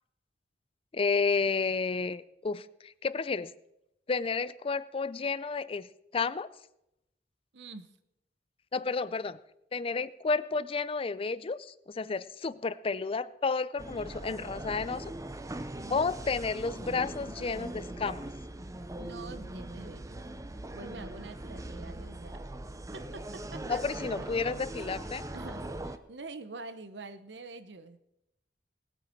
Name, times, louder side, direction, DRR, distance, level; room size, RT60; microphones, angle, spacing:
voice 1, 0.9-3.5 4.1-6.5 8.7-9.4 9.7-15.1 15.9-18.3 23.7-25.2, left 4 dB, 35° left, 17 dB, 0.5 m, -31 dB
voice 2, 7.5-7.9 15.8-16.2 19.0-20.3 20.7-22.5 22.9-24.0 25.3-28.0, right 3 dB, 85° right, 11 dB, 1.0 m, -46 dB
sound 1, 13.8-26.0, right 1 dB, 20° right, 0.6 m, -41 dB
19.5 x 9.1 x 4.5 m, 0.85 s
head